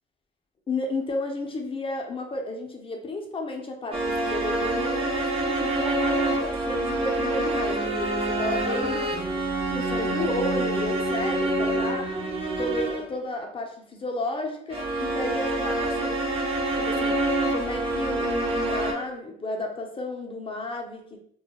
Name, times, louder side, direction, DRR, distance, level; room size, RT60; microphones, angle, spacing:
voice 1, 0.7-9.1 9.7-12.1 12.6-16.2 16.8-17.1 17.5-21.2, left 2 dB, 25° left, 2 dB, 0.5 m, -32 dB
sound 1, 3.9-13.2 14.7-18.9, right 2 dB, 30° right, 0.5 m, -26 dB
2.2 x 2.0 x 2.8 m, 0.64 s
cardioid pair, 90°, 20 cm